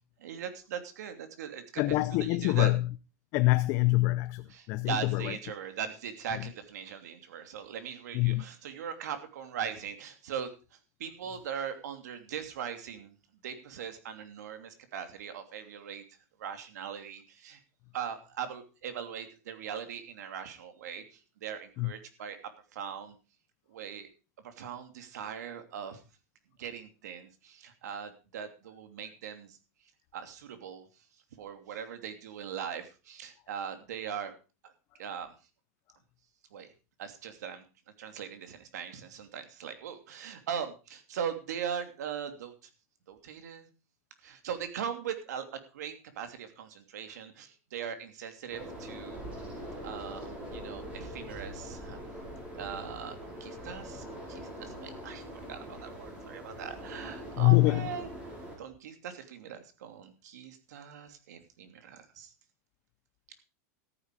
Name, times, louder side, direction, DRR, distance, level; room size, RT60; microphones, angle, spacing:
voice 1, 0.2-1.8 2.2-2.7 4.5-10.5 11.0-13.1 13.4-16.0 16.4-17.6 17.9-22.4 22.7-23.2 23.7-24.1 24.4-26.0 26.6-29.6 30.1-30.8 31.4-34.3 35.0-35.3 36.5-36.7 37.0-37.6 38.0-42.5 43.1-43.7 44.2-49.2 49.8-52.0 52.5-55.2 55.5-58.1 58.6-62.3, right 8 dB, 80° right, 2.8 m, -40 dB
voice 2, 1.8-2.8 3.3-5.4 8.1-8.4 21.8-21.9 57.4-57.9, left 20 dB, 30° left, 0.5 m, -25 dB
sound 1, 48.5-58.6, equal, 15° right, 4.9 m, -43 dB
14.0 x 10.0 x 4.8 m
supercardioid pair, 175°, 9 cm